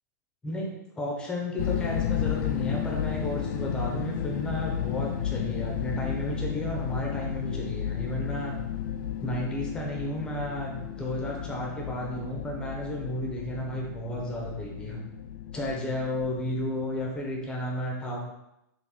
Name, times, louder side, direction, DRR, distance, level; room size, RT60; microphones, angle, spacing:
voice 1, 1.0-8.6 9.2-15.0 15.5-18.3, left 1 dB, 10° left, -2 dB, 0.6 m, -33 dB
sound 1, 1.6-17.4, left 9 dB, 75° left, 0.4 m, -33 dB
4.1 x 2.6 x 3.6 m, 0.86 s
supercardioid pair, 165°, 10 cm